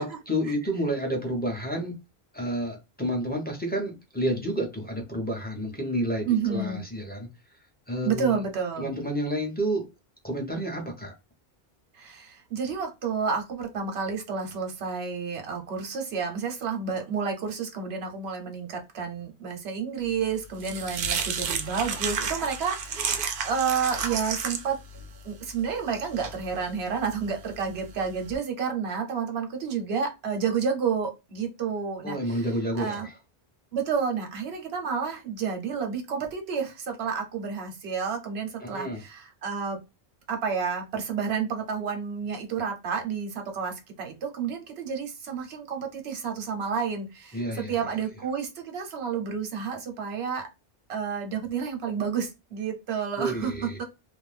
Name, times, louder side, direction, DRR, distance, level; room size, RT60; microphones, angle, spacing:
voice 1, 0.0-1.9 2.3-7.3 7.9-8.4 8.8-9.9 10.2-11.1 32.0-33.2 38.6-39.0 47.3-47.7 53.2-53.8, equal, 10° left, 0.7 m, -30 dB
voice 2, 6.3-6.8 8.0-8.9 11.9-24.8 25.2-32.5 32.7-33.1 33.7-39.8 40.3-50.5 50.9-53.5 53.8-53.9, right 6 dB, 90° right, 1.0 m, -30 dB
sound 1, 20.1-28.4, right 6 dB, 65° right, 0.7 m, -33 dB
2.5 x 2.2 x 3.3 m
omnidirectional pair, 1.0 m